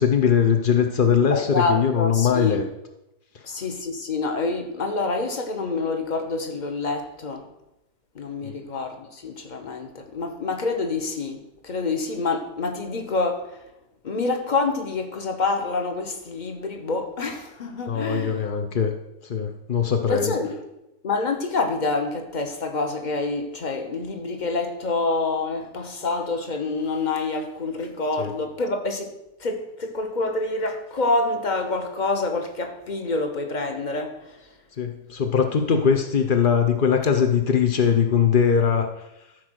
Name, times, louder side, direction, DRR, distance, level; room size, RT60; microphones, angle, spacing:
voice 1, 0.0-2.6 8.4-8.6 17.9-18.9 19.2-20.3 28.2-28.3 34.8-38.9, left 7 dB, 65° left, 0.5 m, -21 dB
voice 2, 1.3-2.6 3.4-7.5 8.1-13.6 14.0-18.4 20.0-20.6 21.0-29.1 29.4-34.4, left 3 dB, 35° left, 0.9 m, -27 dB
13.0 x 4.6 x 6.3 m
omnidirectional pair, 1.9 m